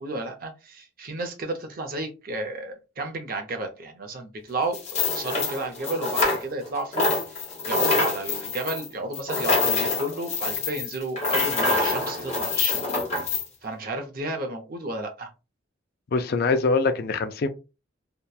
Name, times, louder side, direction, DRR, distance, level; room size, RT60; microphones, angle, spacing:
voice 1, 0.0-7.1 7.6-12.9 13.6-15.3, right 2 dB, 45° right, 0.6 m, -32 dB
sound 1, 4.7-6.7 6.9-13.5, left 3 dB, 35° left, 0.8 m, -26 dB
voice 2, 16.1-17.5, left 4 dB, 50° left, 0.3 m, -23 dB
2.8 x 2.1 x 2.2 m
head